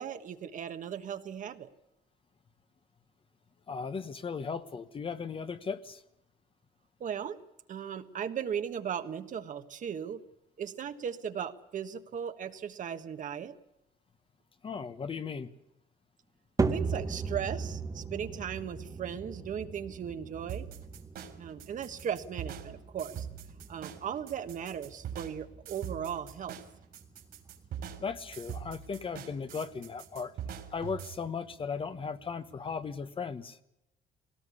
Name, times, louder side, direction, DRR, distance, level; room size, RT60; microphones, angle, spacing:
voice 1, 0.0-1.7 7.0-7.4 7.7-10.2 10.6-13.5 16.7-20.7 21.4-23.3 23.7-26.6, right 8 dB, 50° right, 8 dB, 1.4 m, -37 dB
voice 2, 3.7-6.0 14.6-15.5 28.0-30.4 30.7-33.6, left 5 dB, 30° left, 11 dB, 1.1 m, -37 dB
sound 1, 16.6-33.0, right 4 dB, 20° right, 1.1 m, -39 dB
sound 2, 20.5-31.2, right 9 dB, 65° right, 3.5 m, -43 dB
20.5 x 18.0 x 8.4 m, 0.84 s
cardioid pair, 110°, 17 cm